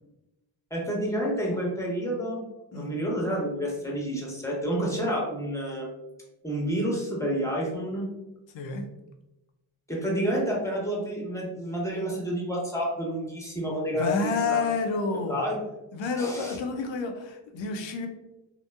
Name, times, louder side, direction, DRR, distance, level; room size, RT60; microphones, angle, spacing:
voice 1, 0.7-2.4 2.7-5.9 6.4-8.1 9.9-14.6 15.3-15.6 16.2-16.6, equal, 5° left, -3 dB, 0.9 m, -29 dB
voice 2, 14.0-15.4 15.9-18.1, left 4 dB, 65° left, 4 dB, 0.6 m, -29 dB
2.9 x 2.0 x 2.2 m, 0.96 s
supercardioid pair, 50°, 48 cm